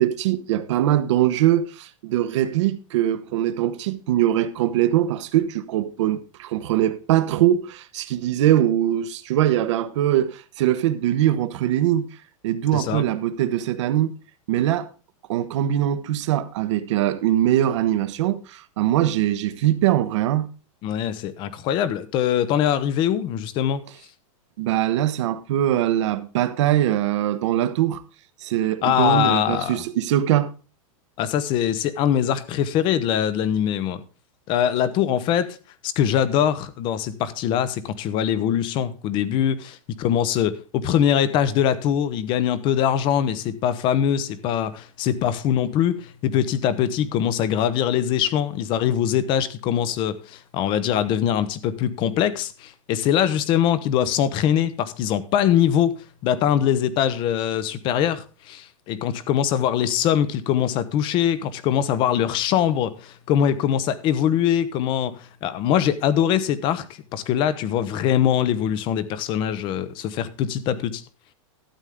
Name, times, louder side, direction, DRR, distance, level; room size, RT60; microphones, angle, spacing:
voice 1, 0.0-12.1 12.4-14.1 14.5-14.9 15.3-20.5 24.6-28.0 28.4-30.5, right 12 dB, 60° right, 1.0 m, -22 dB
voice 2, 12.7-13.1 20.8-23.8 28.8-29.8 31.2-34.0 34.5-35.6 35.8-56.0 56.2-66.9 67.1-71.0, left 10 dB, 30° left, 0.8 m, -22 dB
13.0 x 8.2 x 3.6 m
supercardioid pair, 165°, 17 cm